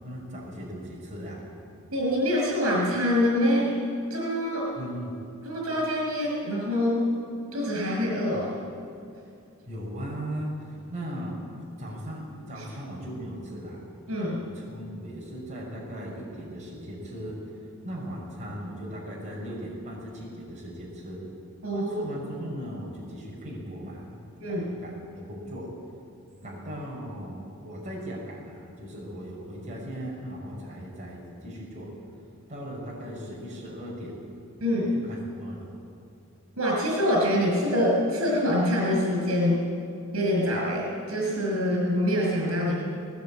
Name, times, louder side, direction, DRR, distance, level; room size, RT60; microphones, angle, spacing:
voice 1, 0.0-1.5 4.7-5.2 9.7-11.4 11.8-13.8 14.2-17.4 17.8-21.2 21.7-24.1 24.5-25.7 26.4-31.9 32.5-34.1 34.9-35.7, equal, 35° right, -3 dB, 5.5 m, -38 dB
voice 2, 1.9-3.7 4.1-4.7 5.4-7.0 7.5-8.5 12.6-12.7 14.1-14.4 21.6-21.9 24.4-24.7 34.6-34.9 36.6-39.6 40.1-42.8, left 1 dB, 80° right, -2 dB, 6.1 m, -25 dB
19.0 x 18.5 x 8.7 m, 2.5 s
head